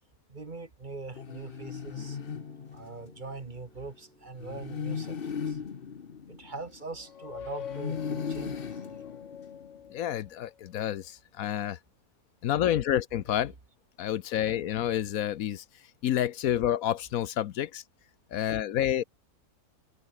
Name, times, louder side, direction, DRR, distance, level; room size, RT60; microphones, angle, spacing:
voice 1, 0.3-2.2 2.7-5.6 6.3-9.0, right 3 dB, 35° right, 1.6 m, -42 dB
sound 1, 1.1-3.2 4.4-7.1 7.6-9.9, left 6 dB, 40° left, 1.2 m, -37 dB
sound 2, 1.9-9.9, equal, 5° left, 7.5 m, -63 dB
sound 3, 6.9-10.5, left 8 dB, 60° left, 1.4 m, -44 dB
voice 2, 9.9-11.8 12.4-13.5 14.0-15.6 16.0-17.8 18.3-19.0, left 11 dB, 75° left, 1.1 m, -29 dB
omnidirectional pair, 1.5 m